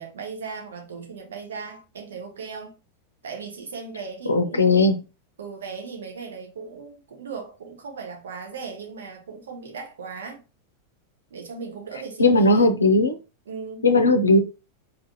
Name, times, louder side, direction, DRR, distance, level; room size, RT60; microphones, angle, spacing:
voice 1, 0.0-2.8 3.2-4.9 5.4-10.4 11.3-12.7 13.5-14.2, right 5 dB, 65° right, 1.1 m, -37 dB
voice 2, 4.3-4.9 12.2-13.2 13.8-14.4, left 2 dB, 75° left, 0.5 m, -17 dB
4.2 x 2.5 x 2.7 m
figure-of-eight pair, 90°, 0 cm